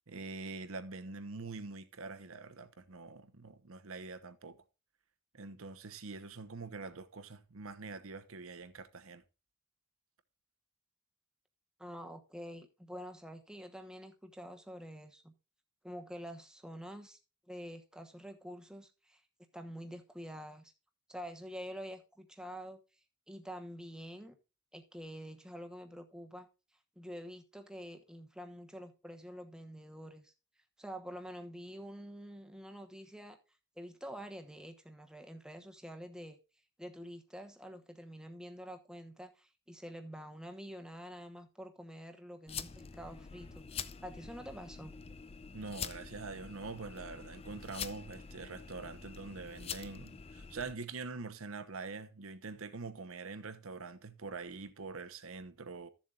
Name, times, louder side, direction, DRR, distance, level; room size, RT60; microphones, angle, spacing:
voice 1, 0.1-4.6 5.3-9.2 45.5-55.9, right 4 dB, 70° right, 1.0 m, -44 dB
voice 2, 11.8-15.3 15.8-17.2 17.5-19.2 19.5-20.7 21.1-22.8 23.3-24.3 24.7-26.5 27.0-30.3 30.8-33.4 33.8-36.4 36.8-43.6 44.0-45.0, equal, 5° right, 1.1 m, -47 dB
sound 1, 42.5-50.7, left 6 dB, 25° left, 0.4 m, -46 dB
14.5 x 7.3 x 2.5 m
head